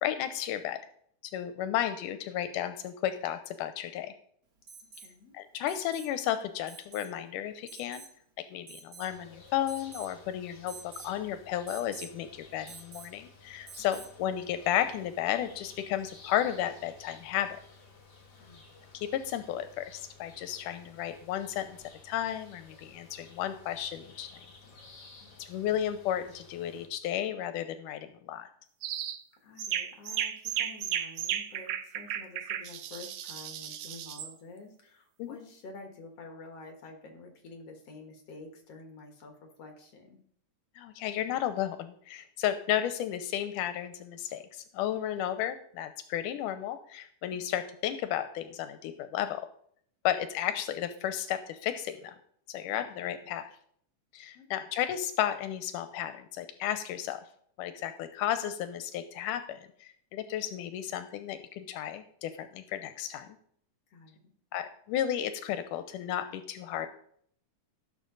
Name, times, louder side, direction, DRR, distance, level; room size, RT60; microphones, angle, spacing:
voice 1, 0.0-0.8 1.2-4.1 5.3-8.1 8.5-17.6 18.9-21.8 22.0-24.3 25.4-28.5 35.2-35.4 40.8-49.5 50.0-52.2 52.5-53.5 54.1-57.2 57.6-63.4 64.5-66.9, left 11 dB, 85° left, 10 dB, 2.2 m, -33 dB
Alarm, 4.7-5.1 5.7-6.1 6.7-7.1 7.7-8.1 8.7-9.2 9.7-10.2 10.7-11.1 11.7-12.1 12.7-13.2 13.7-14.2 15.9-16.0, right 5 dB, 50° right, 1.1 m, -48 dB
voice 2, 5.0-5.3 13.8-14.1 18.4-18.7 25.2-25.8 29.4-40.2 52.8-53.0 54.3-54.7 63.9-64.2, left 3 dB, 55° left, 4 dB, 2.4 m, -49 dB
sound 1, 9.0-26.9, left 4 dB, 35° left, 2.3 m, -55 dB
sound 2, 28.8-29.2 29.6-34.3, right 10 dB, 75° right, 1.9 m, -34 dB
16.0 x 7.0 x 3.8 m, 0.63 s
omnidirectional pair, 3.6 m